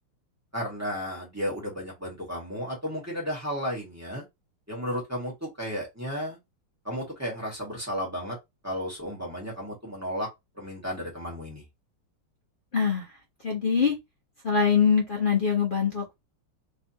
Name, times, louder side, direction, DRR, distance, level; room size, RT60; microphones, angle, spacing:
voice 1, 0.5-4.2 4.7-6.4 6.8-8.4 8.6-10.3 10.5-11.6, equal, 10° right, 1.4 m, -33 dB
voice 2, 12.7-13.1 13.4-13.9 14.4-16.1, left 6 dB, 60° left, 0.5 m, -23 dB
3.7 x 3.3 x 2.8 m
omnidirectional pair, 2.3 m